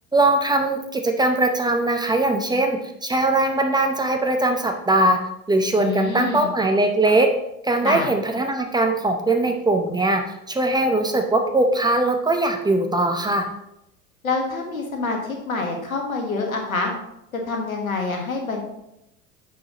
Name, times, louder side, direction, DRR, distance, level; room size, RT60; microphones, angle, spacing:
voice 1, 0.1-5.2 5.5-7.3 7.6-10.2 10.5-13.5, right 2 dB, 10° right, 4 dB, 0.7 m, -20 dB
voice 2, 5.8-6.5 7.8-8.1 14.2-16.9 17.3-18.6, left 3 dB, 75° left, 2 dB, 1.6 m, -26 dB
9.1 x 6.1 x 3.0 m, 0.85 s
figure-of-eight pair, 70°, 42 cm